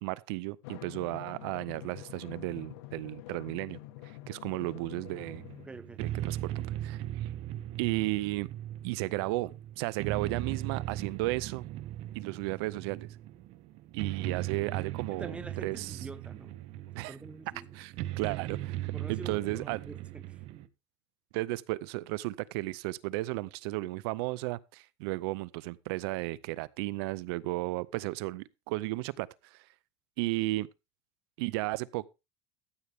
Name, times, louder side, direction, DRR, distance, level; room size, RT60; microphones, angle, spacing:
voice 1, 0.0-5.4 6.0-7.3 7.8-8.5 8.8-11.6 12.1-13.2 13.9-16.1 16.9-17.2 17.7-19.8 21.3-29.7 30.2-30.7 31.4-32.1, right 20 dB, 65° right, 0.5 m, -34 dB
Drum, 0.6-5.7, left 15 dB, 75° left, 1.2 m, -46 dB
sound 1, 5.0-20.7, right 13 dB, 45° right, 0.9 m, -38 dB
voice 2, 5.6-6.0 15.1-16.5 17.1-17.7 18.9-20.4, right 3 dB, 10° right, 0.7 m, -46 dB
14.0 x 8.2 x 3.4 m
supercardioid pair, 155°, 14 cm